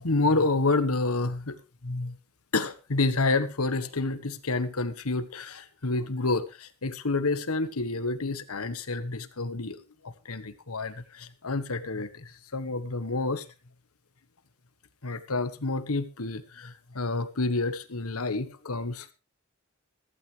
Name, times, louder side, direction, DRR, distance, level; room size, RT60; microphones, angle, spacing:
voice 1, 0.0-2.2 2.5-13.5 15.0-19.1, left 3 dB, 80° left, 12 dB, 1.4 m, -29 dB
15.5 x 14.5 x 3.4 m, 0.30 s
head